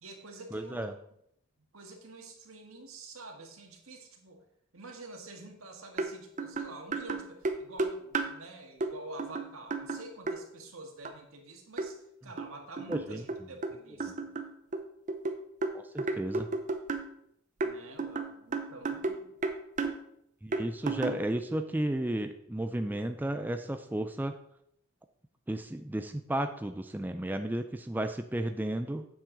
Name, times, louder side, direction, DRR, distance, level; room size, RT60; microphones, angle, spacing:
voice 1, 0.0-0.9 1.7-4.4 4.7-12.0 12.2-14.3 17.6-19.4, right 2 dB, 80° right, 3 dB, 1.7 m, -48 dB
voice 2, 0.5-0.9 12.9-13.2 14.0-14.1 15.7-16.5 20.4-24.4 25.5-29.1, right 1 dB, 10° right, 7 dB, 0.4 m, -33 dB
sound 1, 6.0-6.1 6.4-8.4 8.8-8.9 9.2-10.4 11.0-11.1 11.8-11.9 12.4-13.7 14.0-17.1 17.6-19.2 19.4-20.0 20.5-21.2, right 3 dB, 35° right, 0.8 m, -33 dB
8.9 x 7.3 x 3.9 m, 0.73 s
head